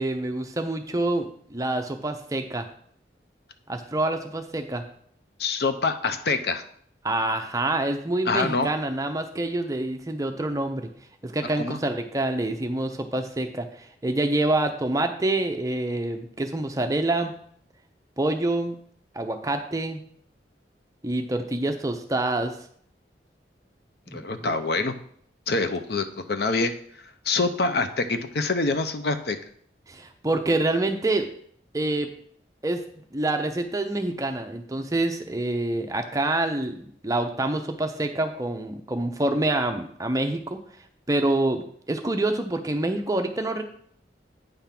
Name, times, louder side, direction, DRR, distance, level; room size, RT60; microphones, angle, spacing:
voice 1, 0.0-2.7 3.7-4.8 7.0-10.9 11.2-17.3 18.2-18.8 19.1-20.0 21.0-22.6 24.1-24.5 29.9-31.3 31.7-32.1 32.6-32.8 33.1-40.6 41.1-43.6, right 2 dB, 20° right, 6 dB, 0.5 m, -26 dB
voice 2, 5.4-6.6 8.3-8.7 11.6-11.8 24.1-24.9 25.5-26.7 27.2-29.4, left 3 dB, 60° left, 9 dB, 0.6 m, -25 dB
9.0 x 3.6 x 5.8 m, 0.63 s
head